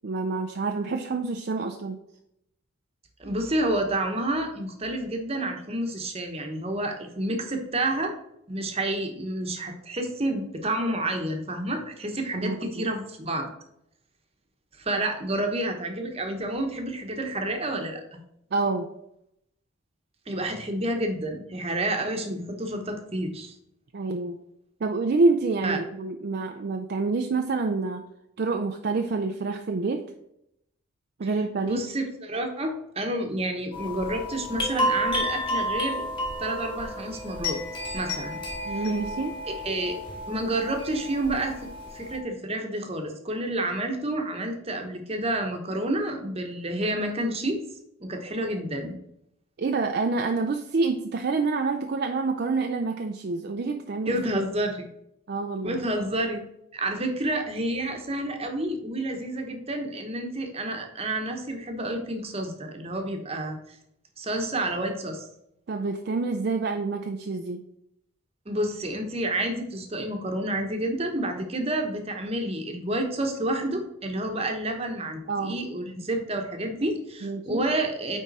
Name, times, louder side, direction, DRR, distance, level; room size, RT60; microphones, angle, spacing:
voice 1, 0.0-2.0 12.3-12.9 18.5-18.9 23.9-24.4 24.8-28.0 28.4-30.0 31.2-31.8 38.7-39.4 49.6-54.2 55.3-55.8 65.7-67.6 75.3-75.6 77.2-77.6, right 3 dB, 50° right, 5 dB, 0.4 m, -27 dB
voice 2, 3.2-8.1 8.5-13.5 14.8-18.2 20.3-23.5 25.6-25.8 31.6-36.0 36.4-37.6 37.9-38.4 38.7-38.9 39.6-40.0 40.3-41.6 41.9-47.6 48.0-48.9 54.1-54.9 55.6-56.4 56.7-63.8 64.2-65.3 68.5-78.2, right 1 dB, 30° right, 4 dB, 1.0 m, -29 dB
sound 1, 33.7-42.2, left 1 dB, 25° left, 1.5 m, -31 dB
9.2 x 3.7 x 4.1 m, 0.79 s
head